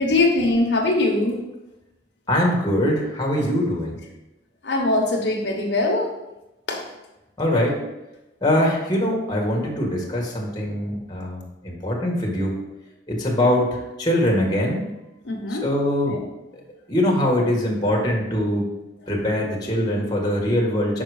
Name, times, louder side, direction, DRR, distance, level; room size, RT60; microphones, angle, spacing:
voice 1, 0.0-1.4 4.6-6.1 6.7-6.8 15.2-15.7 16.1-16.2, left 2 dB, 70° left, -1 dB, 1.1 m, -21 dB
voice 2, 2.3-4.0 7.4-7.8 8.4-12.6 13.1-14.8 15.5-16.2 16.9-18.7 19.1-21.0, left 1 dB, 25° left, -2 dB, 1.5 m, -22 dB
5.9 x 4.8 x 4.9 m, 0.98 s
head